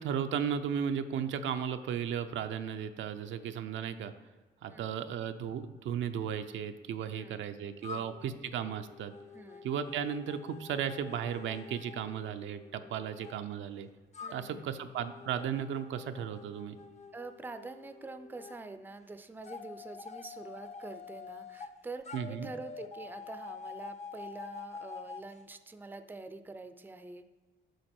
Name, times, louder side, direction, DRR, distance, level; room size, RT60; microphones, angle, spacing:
voice 1, 0.0-4.1 4.6-9.1 9.6-13.9 14.3-16.8 22.1-22.5, right 8 dB, 75° right, 8 dB, 0.5 m, -35 dB
voice 2, 4.7-5.0 7.1-7.4 7.9-8.1 9.3-9.7 14.2-14.9 17.1-27.3, right 3 dB, 10° right, 9 dB, 0.5 m, -46 dB
sound 1, 7.8-13.3 14.1-18.6 19.4-21.7 22.0-25.3, left 5 dB, 35° left, 0.6 m, -47 dB
7.8 x 5.0 x 4.4 m, 1.3 s
cardioid pair, 90°, 20 cm